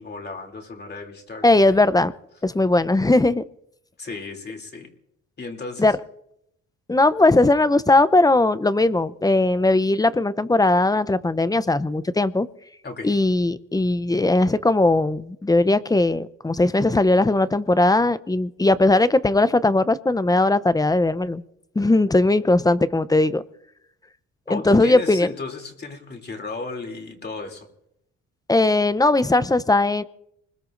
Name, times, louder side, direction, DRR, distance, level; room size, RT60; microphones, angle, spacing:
voice 1, 0.0-1.4 4.0-4.9 5.4-5.9 12.8-13.2 24.5-27.7, left 3 dB, 35° left, 3 dB, 2.9 m, -34 dB
voice 2, 1.4-2.1 2.4-3.4 5.8-5.9 6.9-12.5 13.0-21.4 21.8-23.4 24.5-25.3 28.5-30.0, left 2 dB, 10° left, 15 dB, 0.6 m, -19 dB
25.0 x 21.0 x 2.6 m, 0.79 s
cardioid pair, 90°, 30 cm